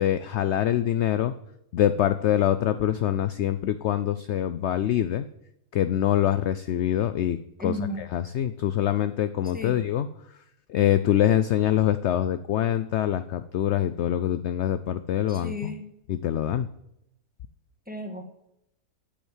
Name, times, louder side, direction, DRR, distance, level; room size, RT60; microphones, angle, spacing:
voice 1, 0.0-1.3 1.7-5.3 5.7-7.4 7.6-7.7 8.1-10.1 10.7-15.7 16.1-16.7, left 11 dB, 65° left, 12 dB, 0.7 m, -24 dB
voice 2, 7.6-8.1 9.4-9.8 15.3-15.9 17.9-18.2, equal, 5° right, 4 dB, 1.4 m, -34 dB
8.9 x 8.3 x 7.3 m, 0.81 s
omnidirectional pair, 1.5 m